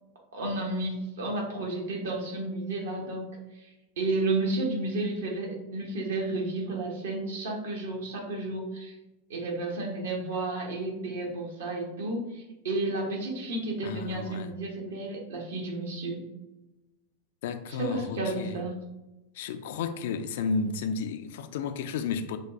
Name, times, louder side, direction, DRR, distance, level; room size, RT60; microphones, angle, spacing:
voice 1, 0.3-3.3 3.6-3.7 4.0-8.9 9.3-16.2 17.7-18.8, right 2 dB, 60° right, 1.0 m, -32 dB
voice 2, 13.8-14.5 17.4-18.6 19.4-22.4, left 5 dB, 55° left, 0.3 m, -32 dB
6.2 x 2.3 x 2.6 m
figure-of-eight pair, 90°, 0 cm